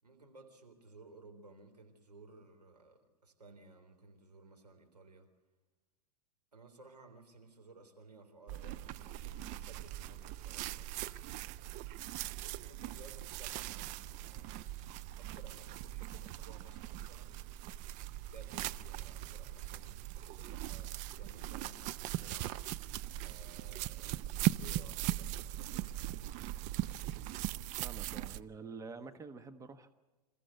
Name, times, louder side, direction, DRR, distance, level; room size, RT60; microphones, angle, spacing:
voice 1, 0.0-5.3 6.5-10.9 12.3-14.8 15.2-17.4 18.3-22.7 23.2-26.3, right 3 dB, 90° right, 3.8 m, -57 dB
sound 1, 8.5-28.4, right 15 dB, 40° right, 0.6 m, -40 dB
voice 2, 27.8-29.9, right 4 dB, 15° right, 1.3 m, -47 dB
27.5 x 14.5 x 8.0 m
hypercardioid pair, 100°, 20 cm